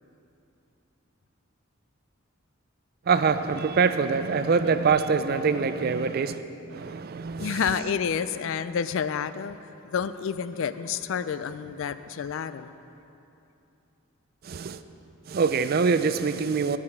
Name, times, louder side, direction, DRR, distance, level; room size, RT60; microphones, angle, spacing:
voice 1, 3.1-6.4 6.7-7.8 14.4-14.8 15.3-16.8, right 5 dB, 45° right, 0.4 m, -24 dB
voice 2, 7.4-12.7, left 7 dB, 65° left, 0.3 m, -29 dB
12.5 x 5.0 x 7.2 m
head